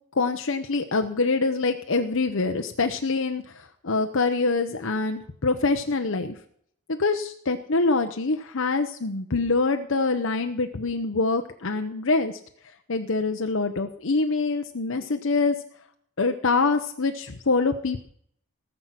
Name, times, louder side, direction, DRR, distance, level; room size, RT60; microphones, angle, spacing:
voice 1, 0.1-6.3 6.9-12.4 12.9-15.6 16.2-18.0, left 3 dB, 60° left, 5 dB, 0.9 m, -25 dB
18.5 x 7.5 x 5.9 m, 0.63 s
head